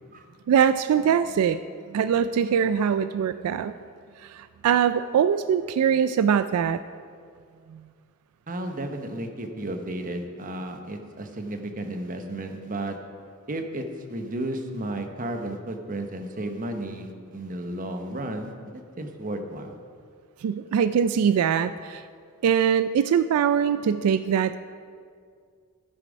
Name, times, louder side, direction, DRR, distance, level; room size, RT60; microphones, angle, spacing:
voice 1, 0.5-1.6 1.9-3.7 4.2-6.8 7.7-7.8 20.4-22.0 22.4-24.6, right 8 dB, 80° right, 13 dB, 0.3 m, -22 dB
voice 2, 8.5-13.0 13.5-19.8, right 1 dB, 40° right, 6 dB, 0.9 m, -33 dB
12.5 x 7.4 x 5.1 m, 2.1 s
head